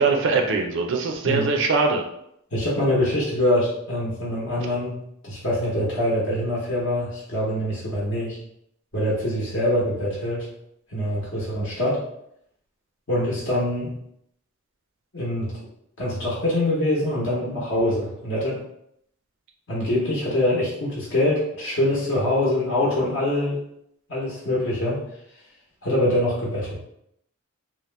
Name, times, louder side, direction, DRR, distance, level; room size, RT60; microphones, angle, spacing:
voice 1, 0.0-2.0, right 4 dB, 60° right, 3 dB, 0.5 m, -22 dB
voice 2, 2.5-8.4 8.9-10.5 10.9-12.0 13.1-13.9 15.1-15.5 16.0-18.6 19.7-23.6 24.1-25.0 25.8-26.8, left 1 dB, 60° left, -6 dB, 0.9 m, -24 dB
2.8 x 2.1 x 3.1 m, 0.74 s
head